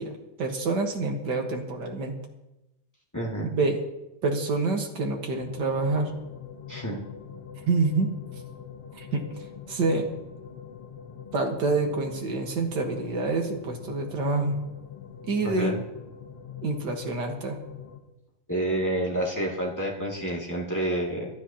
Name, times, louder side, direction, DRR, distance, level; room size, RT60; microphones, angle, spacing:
voice 1, 0.0-2.1 3.5-3.8 4.2-6.1 7.7-8.1 8.9-9.3 9.7-10.1 11.3-14.6 15.3-15.8 16.6-17.6, right 3 dB, 45° right, 2 dB, 1.6 m, -27 dB
voice 2, 3.1-3.5 6.7-7.0 15.4-15.8 18.5-21.3, right 1 dB, 5° left, -4 dB, 1.8 m, -29 dB
sound 1, 5.3-18.0, left 7 dB, 60° left, 1.8 m, -43 dB
25.0 x 10.0 x 2.9 m, 0.93 s
omnidirectional pair, 3.6 m